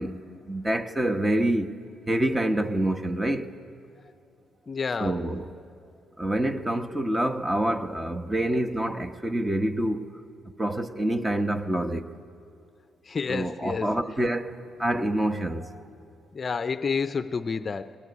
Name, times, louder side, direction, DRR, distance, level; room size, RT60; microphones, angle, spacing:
voice 1, 0.0-1.7 2.1-3.5 5.0-5.6 6.2-10.2 10.6-12.1 13.3-15.8, right 1 dB, 15° right, 1.1 m, -27 dB
voice 2, 4.7-5.2 13.1-13.9 16.3-18.0, left 5 dB, 35° left, 0.6 m, -29 dB
22.0 x 19.5 x 9.6 m
cardioid pair, 90°, 0 cm